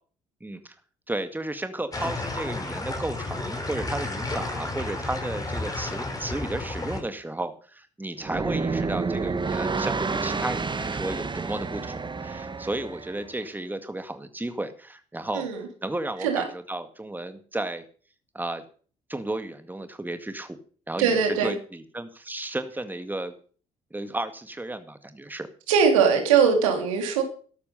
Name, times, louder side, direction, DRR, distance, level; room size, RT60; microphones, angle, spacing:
voice 1, 0.4-0.7 1.1-15.5 15.8-17.8 18.3-18.6 19.1-20.6 20.9-23.3 23.9-25.5, right 2 dB, 10° right, 9 dB, 2.1 m, -33 dB
sound 1, 1.9-7.0, left 2 dB, 20° left, 4.9 m, -32 dB
sound 2, 8.2-13.3, right 4 dB, 30° right, 1.7 m, -29 dB
voice 2, 21.0-21.5 25.7-27.2, right 6 dB, 80° right, 4 dB, 3.1 m, -21 dB
13.5 x 12.0 x 5.5 m, 0.42 s
hypercardioid pair, 50°, 17 cm